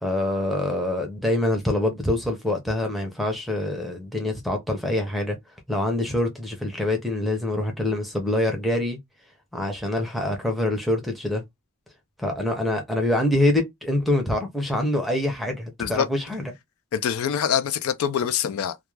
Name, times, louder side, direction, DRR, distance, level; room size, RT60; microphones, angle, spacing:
voice 1, 0.0-5.4 5.7-9.0 9.5-11.4 12.2-16.5, left 1 dB, ahead, 0.5 m, -25 dB
voice 2, 16.9-18.8, left 8 dB, 75° left, 0.3 m, -24 dB
2.3 x 2.1 x 3.1 m
head